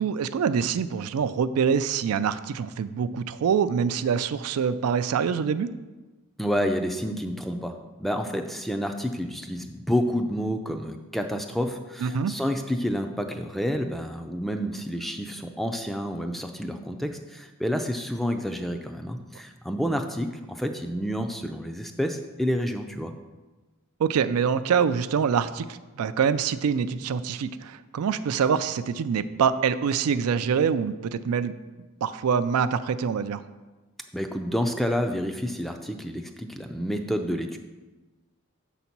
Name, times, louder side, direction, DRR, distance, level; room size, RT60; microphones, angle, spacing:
voice 1, 0.0-5.7 12.0-12.3 24.0-31.5 32.0-33.4, right 6 dB, 80° right, 12 dB, 0.4 m, -25 dB
voice 2, 6.4-7.7 8.0-23.1 34.1-37.6, equal, ahead, 6 dB, 0.4 m, -29 dB
6.8 x 4.1 x 5.9 m, 1.2 s
head